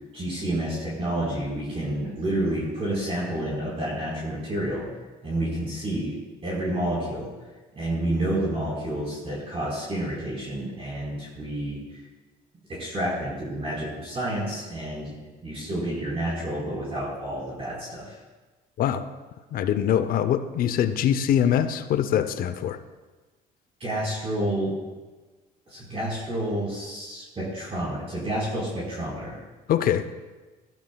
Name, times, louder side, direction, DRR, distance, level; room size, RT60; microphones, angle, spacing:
voice 1, 0.1-4.8 5.2-6.2 6.4-7.3 7.7-12.0 12.7-15.2 15.4-18.2 23.8-24.7 25.7-29.4, right 1 dB, 35° right, -6 dB, 4.1 m, -29 dB
voice 2, 19.5-22.8 29.7-30.1, left 9 dB, 60° left, 10 dB, 0.6 m, -23 dB
16.0 x 11.5 x 2.3 m, 1.3 s
cardioid pair, 110°, 17 cm